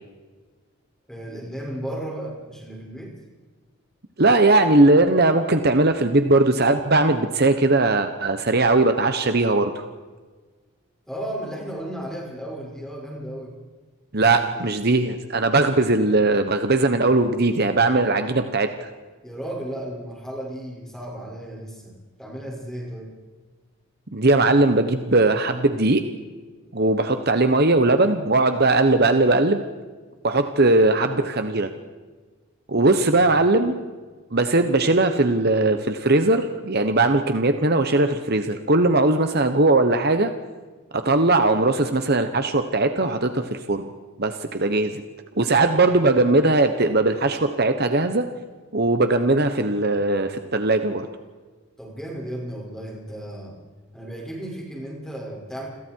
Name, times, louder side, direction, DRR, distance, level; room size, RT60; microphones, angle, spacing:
voice 1, 1.1-3.1 11.1-13.5 19.2-21.9 22.2-23.1 33.1-33.3 51.8-53.6 53.9-55.7, right 1 dB, 5° left, -1 dB, 6.2 m, -34 dB
voice 2, 4.2-9.8 14.1-18.9 24.1-26.0 26.7-29.6 30.2-31.7 32.7-33.8 34.3-40.3 41.0-43.9 44.2-44.9 45.4-48.3 48.7-51.1, right 2 dB, 45° right, 8 dB, 1.3 m, -19 dB
30.0 x 22.0 x 4.8 m, 1.4 s
head